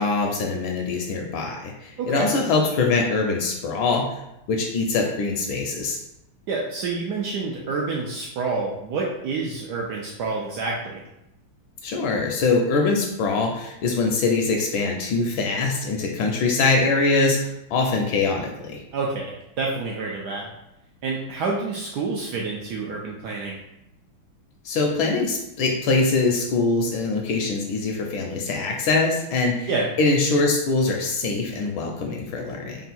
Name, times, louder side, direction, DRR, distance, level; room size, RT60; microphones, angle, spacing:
voice 1, 0.0-4.2 4.5-6.0 11.8-18.8 24.6-29.7 30.0-32.8, left 3 dB, 75° left, 2 dB, 1.3 m, -23 dB
voice 2, 2.0-2.3 6.5-11.0 18.9-20.5 21.0-23.6 29.7-29.9, right 3 dB, 85° right, -2 dB, 0.9 m, -28 dB
3.6 x 2.3 x 4.1 m, 0.86 s
omnidirectional pair, 2.3 m